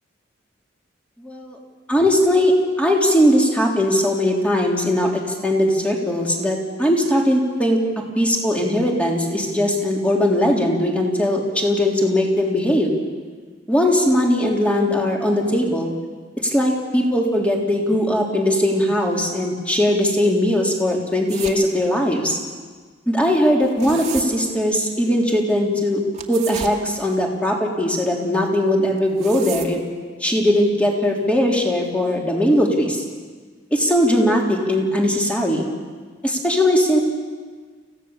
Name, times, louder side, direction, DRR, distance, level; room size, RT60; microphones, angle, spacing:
voice 1, 1.2-1.6 1.9-2.5 2.8-7.8 8.1-12.9 13.7-15.9 16.4-22.4 23.1-26.0 26.3-29.8 30.2-33.0 33.7-35.7 36.2-37.0, left 1 dB, 5° left, -1 dB, 3.4 m, -19 dB
sound 1, 21.3-21.6 23.5-24.2 26.1-26.8 29.0-29.8, right 6 dB, 35° right, 2.0 m, -32 dB
29.0 x 16.5 x 7.2 m, 1.5 s
head